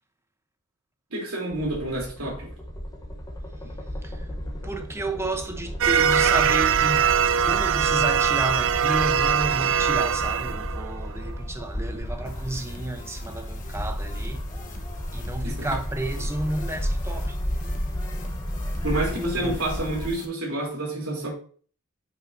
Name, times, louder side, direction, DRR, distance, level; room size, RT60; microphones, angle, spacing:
voice 1, 1.1-2.5 3.6-3.7 15.4-15.5 18.8-21.3, right 1 dB, 80° right, 3.4 m, -29 dB
sound 1, 1.5-20.1, equal, 20° left, 1.1 m, -33 dB
voice 2, 4.6-14.5 15.1-17.4 19.1-19.6, right 2 dB, 10° right, 0.8 m, -32 dB
sound 2, 5.8-11.3, right 8 dB, 65° right, 0.5 m, -22 dB
sound 3, 12.3-20.3, left 1 dB, 40° left, 1.2 m, -43 dB
8.9 x 5.5 x 2.7 m
head